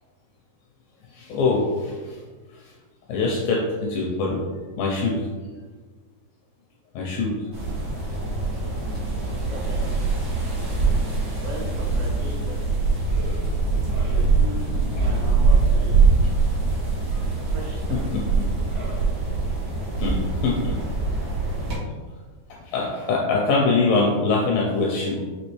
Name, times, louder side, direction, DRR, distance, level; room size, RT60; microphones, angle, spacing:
voice 1, 1.1-2.2 3.1-4.4 4.8-5.3 7.0-7.4 10.8-10.9 17.1-17.3 17.9-18.5 20.0-20.8 22.7-25.2, left 3 dB, 85° left, -1 dB, 2.1 m, -23 dB
sound 1, 7.5-21.8, right 4 dB, 65° right, 1.1 m, -23 dB
voice 2, 9.5-9.9 11.4-12.6 14.0-16.1 17.5-17.8 18.1-18.2, equal, 80° right, -3 dB, 2.1 m, -37 dB
6.2 x 2.8 x 3.0 m, 1.4 s
omnidirectional pair, 4.6 m